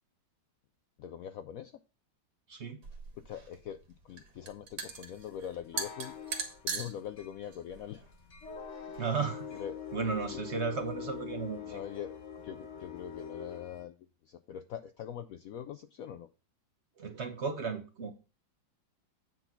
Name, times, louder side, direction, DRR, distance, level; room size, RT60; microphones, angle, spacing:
voice 1, 1.0-1.8 3.2-6.2 6.6-8.0 9.5-9.8 10.3-10.4 11.6-12.2 12.4-13.9 14.2-16.3, left 9 dB, 90° left, 10 dB, 0.7 m, -43 dB
voice 2, 2.5-2.8 8.9-9.4 9.9-11.8 17.0-18.1, right 5 dB, 50° right, 7 dB, 0.9 m, -34 dB
sound 1, 2.8-9.0, right 5 dB, 85° right, 2.2 m, -41 dB
sound 2, 4.9-13.8, left 7 dB, 40° left, 1.4 m, -44 dB
9.0 x 4.0 x 5.8 m, 0.32 s
omnidirectional pair, 2.0 m